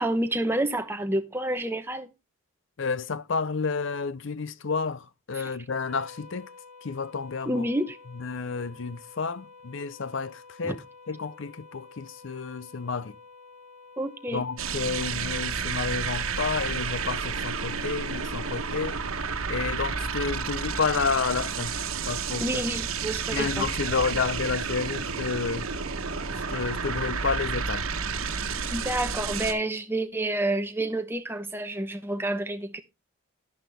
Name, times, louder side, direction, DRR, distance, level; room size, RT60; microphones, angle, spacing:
voice 1, 0.0-2.1 5.4-5.5 7.5-8.0 10.6-10.7 14.0-14.4 22.4-23.7 28.7-32.8, right 1 dB, 10° right, 0.9 m, -29 dB
voice 2, 2.8-6.5 6.8-7.7 8.1-13.2 14.3-19.0 19.5-22.6 23.3-25.7 26.3-27.9, left 5 dB, 60° left, 0.6 m, -30 dB
sound 1, 5.8-16.7, left 4 dB, 35° right, 1.2 m, -50 dB
sound 2, 14.6-29.5, right 5 dB, 80° right, 1.2 m, -31 dB
11.0 x 10.0 x 3.4 m
head